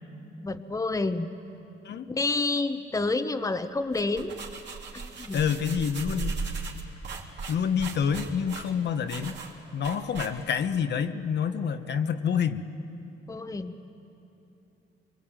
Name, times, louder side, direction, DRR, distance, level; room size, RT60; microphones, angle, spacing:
voice 1, 0.4-1.3 2.1-4.3 4.9-5.4 13.3-13.7, left 3 dB, 15° left, 8 dB, 1.0 m, -29 dB
sound 1, 3.8-10.7, right 4 dB, 60° right, 3.1 m, -37 dB
voice 2, 5.3-6.4 7.5-9.4 9.7-12.6, left 7 dB, 60° left, 8 dB, 1.2 m, -27 dB
24.0 x 23.0 x 9.0 m, 2.9 s
cardioid pair, 90°, 20 cm